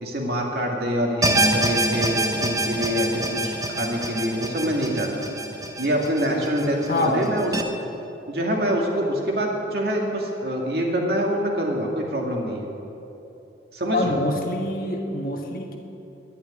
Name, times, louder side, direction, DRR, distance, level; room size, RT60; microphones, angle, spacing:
voice 1, 0.0-5.2 5.8-7.5 8.3-12.7 13.7-14.2, equal, 55° right, 0 dB, 2.3 m, -25 dB
sound 1, 1.2-7.6, right 1 dB, 20° right, 0.9 m, -26 dB
voice 2, 6.9-7.3 13.9-15.8, left 1 dB, 50° left, 2 dB, 1.5 m, -25 dB
11.0 x 11.0 x 9.8 m, 3.0 s
head